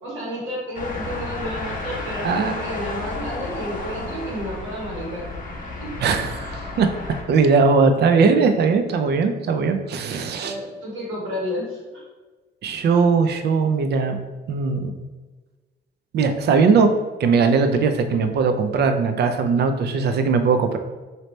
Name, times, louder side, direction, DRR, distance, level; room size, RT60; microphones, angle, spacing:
voice 1, 0.0-5.2 5.6-5.9 10.4-12.0, equal, 80° right, -4 dB, 1.4 m, -31 dB
sound 1, 0.7-7.2, left 2 dB, 45° left, 0.7 m, -32 dB
voice 2, 6.0-6.9 7.3-10.6 12.6-14.2 14.5-14.9 16.1-16.9 17.2-20.8, right 5 dB, 55° right, 7 dB, 0.4 m, -19 dB
3.1 x 2.7 x 3.2 m, 1.3 s
cardioid pair, 90°, 20 cm